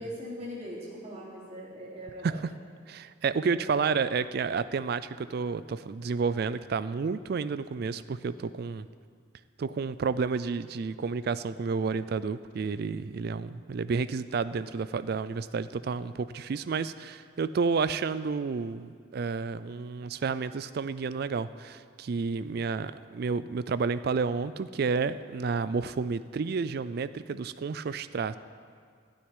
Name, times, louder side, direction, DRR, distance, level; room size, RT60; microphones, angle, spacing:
voice 1, 0.0-2.4 3.5-3.7, equal, 30° right, -7 dB, 3.2 m, -41 dB
voice 2, 2.9-8.9 9.6-28.4, right 5 dB, 50° right, 14 dB, 0.3 m, -30 dB
12.5 x 6.5 x 9.8 m, 2.1 s
head